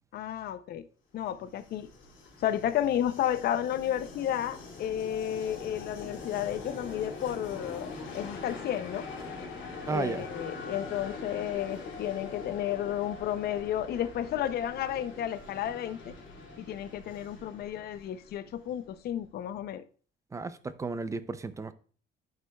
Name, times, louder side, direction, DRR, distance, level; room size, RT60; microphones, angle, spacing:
voice 1, 0.1-0.9 1.1-1.9 2.4-9.1 9.9-16.1 16.6-19.8, left 11 dB, 55° left, 0.5 m, -32 dB
Train, 1.3-19.0, left 3 dB, 75° left, 2.4 m, -43 dB
voice 2, 9.9-10.3 20.3-21.7, right 4 dB, 15° right, 0.4 m, -33 dB
11.0 x 5.3 x 2.2 m
cardioid pair, 160°, 20 cm